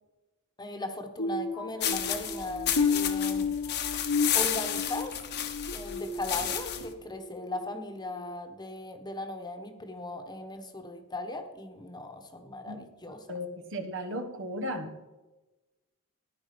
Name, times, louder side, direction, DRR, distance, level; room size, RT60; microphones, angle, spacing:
voice 1, 0.6-3.5 4.3-5.1 5.7-13.3, left 2 dB, 20° left, 6 dB, 1.3 m, -38 dB
sound 1, 1.2-6.8 7.3-7.6 8.1-8.3, left 4 dB, 85° left, 1.7 m, -32 dB
sound 2, 1.8-6.9, left 10 dB, 50° left, 1.2 m, -32 dB
voice 2, 13.3-14.9, equal, 60° right, 5 dB, 1.4 m, -35 dB
15.5 x 10.5 x 5.3 m, 1.1 s
head